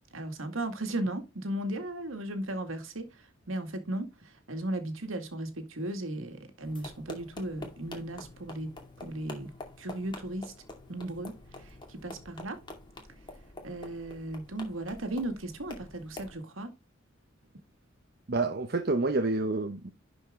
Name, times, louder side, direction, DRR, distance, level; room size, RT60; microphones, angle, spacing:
voice 1, 0.1-9.5 9.8-10.5 10.9-12.6 13.6-16.7, right 1 dB, 90° right, 2.0 m, -36 dB
sound 1, 6.6-16.4, left 2 dB, 25° left, 2.3 m, -47 dB
voice 2, 18.3-19.9, right 3 dB, 50° right, 0.8 m, -28 dB
11.5 x 5.2 x 3.7 m
head